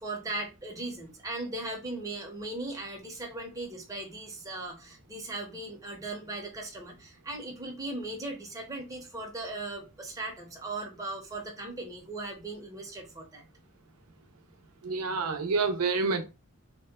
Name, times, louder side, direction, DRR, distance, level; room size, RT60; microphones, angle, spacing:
voice 1, 0.0-13.4, right 2 dB, 15° right, 0.7 m, -38 dB
voice 2, 14.8-16.2, right 4 dB, 85° right, 0.6 m, -28 dB
2.8 x 2.1 x 3.4 m
head